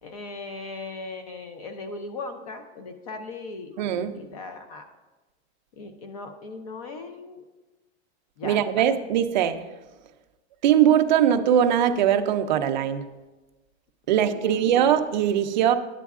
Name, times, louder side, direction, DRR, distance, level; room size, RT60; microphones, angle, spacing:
voice 1, 0.0-3.8 4.1-4.8 5.7-7.4 8.4-8.9 14.1-14.7, left 3 dB, 35° left, 0.5 m, -38 dB
voice 2, 3.8-4.2 8.4-9.6 10.6-13.1 14.1-15.7, right 9 dB, 45° right, 0.4 m, -21 dB
10.5 x 8.2 x 2.4 m
supercardioid pair, 180°, 33 cm